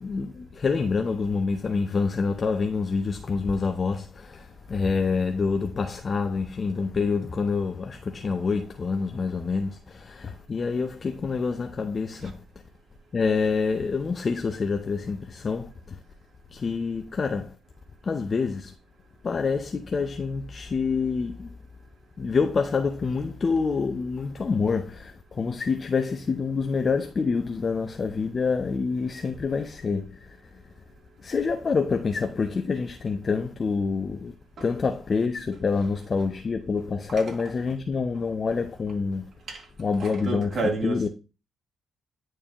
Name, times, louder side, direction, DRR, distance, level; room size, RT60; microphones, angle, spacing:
voice 1, 0.0-4.0 4.7-9.7 10.1-12.3 13.1-15.7 16.5-17.5 18.1-18.7 19.2-21.5 22.2-25.1 25.4-30.1 31.2-34.3 34.6-39.2 39.8-40.5 40.8-41.1, left 4 dB, 40° left, 0.6 m, -26 dB
voice 2, 40.0-41.1, right 2 dB, 50° right, 3.1 m, -30 dB
10.0 x 4.6 x 3.0 m
cardioid pair, 90°, 0 cm